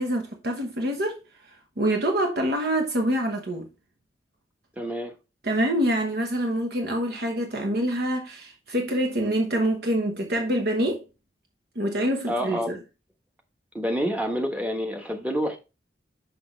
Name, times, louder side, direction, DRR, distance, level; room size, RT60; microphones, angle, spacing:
voice 1, 0.0-3.7 5.4-11.0 11.7-12.8, right 1 dB, 60° right, 1.1 m, -26 dB
voice 2, 4.8-5.1 12.3-12.8 13.7-15.6, equal, 10° right, 1.2 m, -28 dB
6.1 x 6.0 x 3.2 m
head